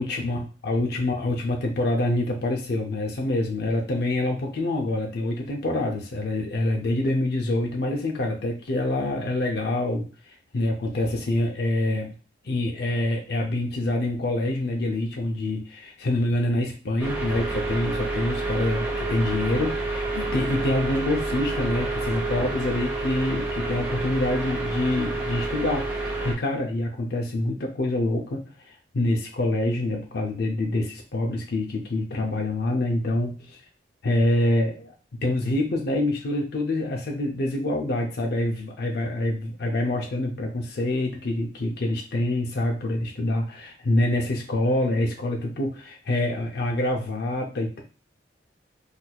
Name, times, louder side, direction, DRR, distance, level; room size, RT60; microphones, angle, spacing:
voice 1, 0.0-10.1 10.5-12.1 12.4-33.6 34.0-34.9 35.2-47.8, left 1 dB, 60° left, 1 dB, 0.5 m, -26 dB
sound 1, 17.0-26.3, right 2 dB, 10° right, 0.9 m, -28 dB
4.1 x 2.6 x 2.2 m, 0.36 s
head